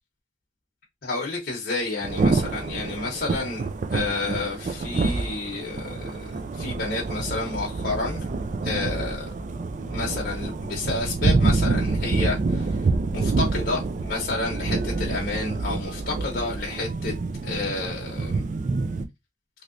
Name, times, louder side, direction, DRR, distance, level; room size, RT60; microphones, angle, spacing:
voice 1, 1.0-8.3 8.6-9.3 9.8-12.8 13.1-17.1 17.4-18.4, left 3 dB, 50° left, 0.9 m, -30 dB
Thunder / Rain, 2.0-19.1, right 3 dB, 40° right, 0.3 m, -27 dB
3.2 x 2.9 x 2.5 m
head